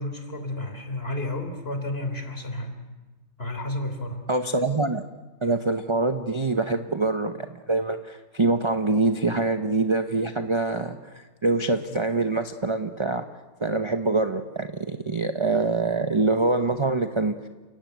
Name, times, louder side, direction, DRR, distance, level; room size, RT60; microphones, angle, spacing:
voice 1, 0.0-2.8 3.4-4.3, left 1 dB, 35° left, 6 dB, 3.7 m, -31 dB
voice 2, 4.3-5.0 5.4-13.3 13.6-17.3, right 3 dB, 25° right, 7 dB, 0.7 m, -25 dB
30.0 x 16.0 x 9.4 m, 1.3 s
omnidirectional pair, 1.8 m